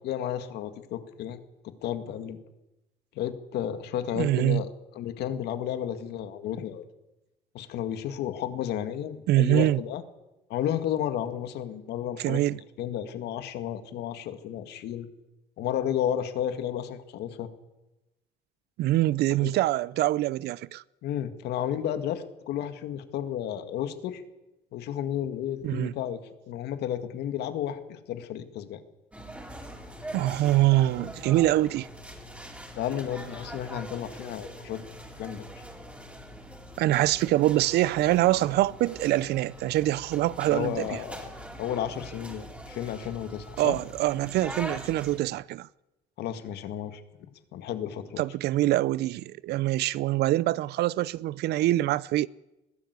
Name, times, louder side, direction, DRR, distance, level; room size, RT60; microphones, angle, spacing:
voice 1, 0.0-1.4 1.8-2.4 3.2-4.7 4.9-6.9 7.5-10.0 10.5-12.4 12.8-15.1 15.6-17.5 19.4-19.5 21.0-24.2 24.7-28.8 32.8-34.8 35.2-35.5 40.5-41.2 41.6-43.8 46.2-48.2, left 10 dB, 80° left, 2.0 m, -32 dB
voice 2, 4.1-4.6 9.3-9.8 12.2-12.6 18.8-20.8 25.6-25.9 30.1-31.9 36.8-41.0 43.6-45.7 48.2-52.3, right 15 dB, 75° right, 0.6 m, -24 dB
sound 1, 29.1-45.2, equal, 5° right, 4.3 m, -43 dB
21.5 x 15.5 x 8.2 m
cardioid pair, 110°, 17 cm